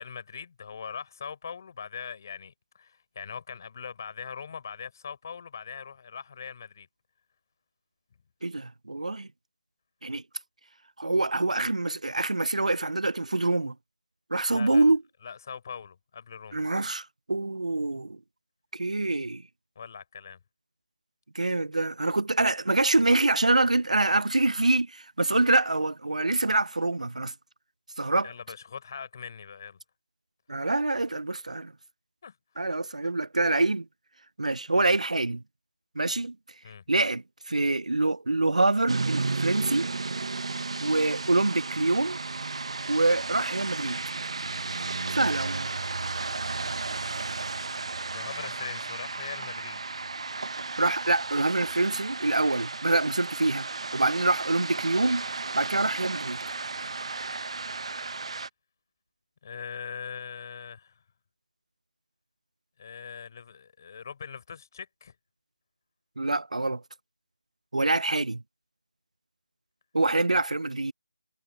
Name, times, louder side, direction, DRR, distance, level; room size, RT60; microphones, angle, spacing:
voice 1, 0.0-6.9 14.5-14.9 15.2-16.6 19.8-20.4 28.2-29.8 32.2-32.7 36.6-36.8 48.1-49.8 59.4-61.0 62.8-65.1, left 6 dB, 30° left, 4.3 m, -41 dB
voice 2, 8.4-9.3 10.0-10.2 11.0-13.7 14.3-15.0 16.5-18.2 18.7-19.4 21.3-27.3 28.0-28.3 30.5-31.7 32.6-33.9 34.4-35.4 36.0-36.4 36.9-39.9 40.8-42.2 42.9-44.0 45.1-45.8 50.8-53.7 53.9-55.3 55.5-56.4 66.2-66.8 67.7-68.4 69.9-70.9, right 2 dB, 90° right, 0.6 m, -25 dB
sound 1, 38.9-58.5, right 3 dB, 55° right, 1.1 m, -34 dB
figure-of-eight pair, 170°, 4 cm